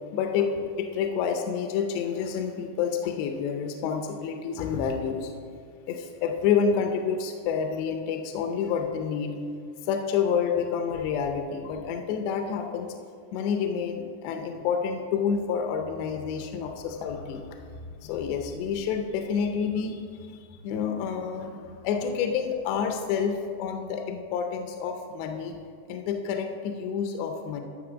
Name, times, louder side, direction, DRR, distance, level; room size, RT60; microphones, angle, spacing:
voice 1, 0.1-5.3 5.9-9.3 9.8-12.9 13.3-17.6 18.0-25.6 25.9-27.6, left 6 dB, 80° left, 4 dB, 2.7 m, -28 dB
11.0 x 6.5 x 6.2 m, 2.2 s
omnidirectional pair, 5.1 m